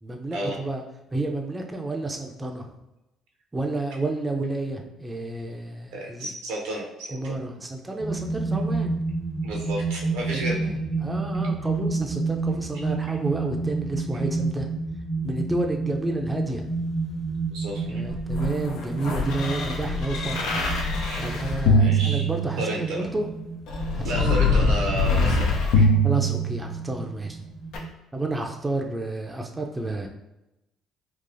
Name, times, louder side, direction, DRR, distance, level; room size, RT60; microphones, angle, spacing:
voice 1, 0.0-0.8 1.1-2.8 3.5-6.3 7.1-8.9 10.3-14.7 15.2-16.7 17.9-20.6 21.2-23.3 23.9-24.6 24.9-25.0 26.0-27.4 28.1-30.1, right 2 dB, 20° right, 2 dB, 0.5 m, -30 dB
voice 2, 5.9-7.4 9.4-10.6 12.7-12.8 14.1-14.3 17.5-18.0 21.0-21.2 21.8-22.3 22.6-23.1 24.0-25.9, right 1 dB, 80° right, -1 dB, 0.8 m, -32 dB
sound 1, 8.0-27.9, right 3 dB, 35° left, 1.0 m, -30 dB
sound 2, 18.0-22.9 23.7-27.0 27.7-27.8, left 1 dB, 75° left, 0.5 m, -23 dB
3.8 x 2.4 x 2.6 m, 0.94 s
hypercardioid pair, 60°, 0 cm